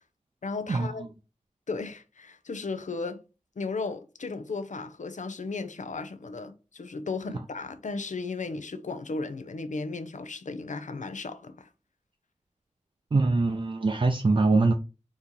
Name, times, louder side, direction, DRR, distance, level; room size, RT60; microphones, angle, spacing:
voice 1, 0.4-1.0 1.7-3.2 3.6-11.7, left 3 dB, 75° left, 0.6 m, -35 dB
voice 2, 13.1-14.7, right 3 dB, 45° right, 0.5 m, -23 dB
4.1 x 3.1 x 3.7 m
wide cardioid pair, 70°, 13 cm